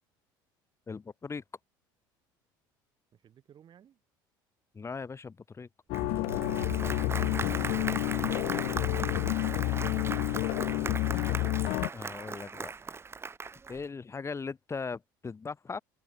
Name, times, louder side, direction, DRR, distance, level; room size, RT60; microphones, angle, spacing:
voice 1, 0.9-1.4 4.7-5.7 11.9-12.7 13.7-15.8, left 5 dB, 25° left, 1.6 m, -39 dB
voice 2, 3.1-4.0, right 9 dB, 45° right, 2.1 m, -59 dB
sound 1, 5.9-11.9, left 23 dB, 65° left, 0.4 m, -29 dB
Applause, 5.9-13.8, right 4 dB, 25° right, 0.9 m, -38 dB
sound 2, 6.0-11.0, right 20 dB, 80° right, 1.1 m, -44 dB
open air
hypercardioid pair, 75°, 11 cm